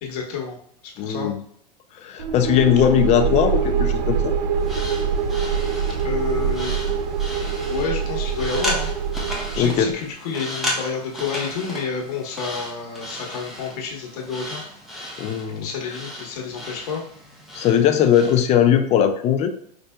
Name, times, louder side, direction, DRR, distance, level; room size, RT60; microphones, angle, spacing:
voice 1, 0.0-0.6 0.8-1.3 6.0-6.8 7.7-8.9 9.5-14.6 15.6-17.0, left 5 dB, 65° left, 0 dB, 1.2 m, -29 dB
voice 2, 1.0-1.4 1.9-4.3 9.6-9.9 15.2-16.0 17.5-19.5, left 9 dB, 30° left, 7 dB, 0.5 m, -19 dB
sound 1, 2.2-10.0, right 7 dB, 85° right, 0.4 m, -24 dB
sound 2, 4.6-18.5, left 1 dB, ahead, 0.9 m, -34 dB
5.3 x 2.6 x 2.2 m, 0.64 s
hypercardioid pair, 115°, 21 cm